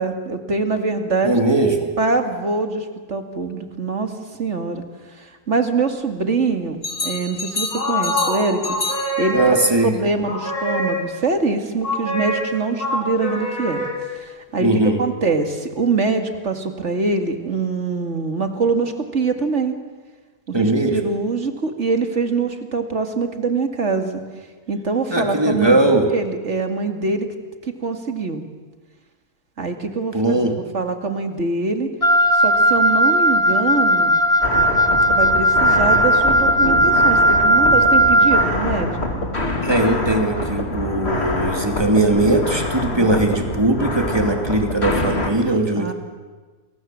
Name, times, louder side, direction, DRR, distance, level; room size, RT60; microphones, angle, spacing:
voice 1, 0.0-1.4 2.0-4.1 4.4-4.8 5.1-9.6 9.8-13.8 14.1-14.7 15.0-19.7 20.5-24.2 24.7-25.8 26.1-27.3 27.6-28.4 29.6-31.9 32.3-34.2 35.1-39.2 42.9-43.2 45.8-45.9, right 3 dB, 50° right, 6 dB, 2.5 m, -24 dB
voice 2, 1.2-1.9 9.3-9.9 14.6-15.0 20.5-21.0 25.1-26.1 30.1-30.5 37.1-37.2 39.6-45.9, right 2 dB, 15° right, 4 dB, 2.6 m, -19 dB
sound 1, 6.8-9.8 10.2-11.3 11.8-14.3, left 1 dB, 65° left, 5.0 m, -25 dB
Wind instrument woodwind instrument, 32.0-38.5, right 1 dB, 25° left, 1.3 m, -16 dB
sound 2, 34.4-45.3, left 2 dB, 40° left, 2.9 m, -25 dB
29.0 x 22.5 x 7.7 m, 1.4 s
omnidirectional pair, 1.6 m